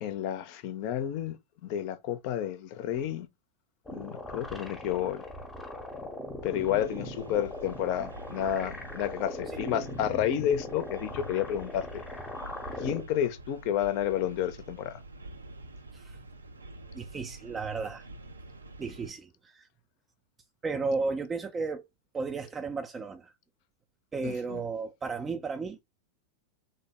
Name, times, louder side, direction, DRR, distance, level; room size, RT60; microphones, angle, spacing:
voice 1, 0.0-3.3 3.9-5.2 6.4-12.0 12.8-15.0 24.2-24.6, left 10 dB, 45° left, 0.6 m, -31 dB
sound 1, 3.9-13.0, left 1 dB, 10° left, 0.8 m, -40 dB
sound 2, 6.5-19.1, right 2 dB, 75° right, 0.5 m, -47 dB
voice 2, 16.9-18.1 18.8-19.7 20.6-21.8 22.1-23.3 24.1-25.8, right 4 dB, 20° right, 0.4 m, -34 dB
3.4 x 2.1 x 3.7 m
figure-of-eight pair, 90°, 0 cm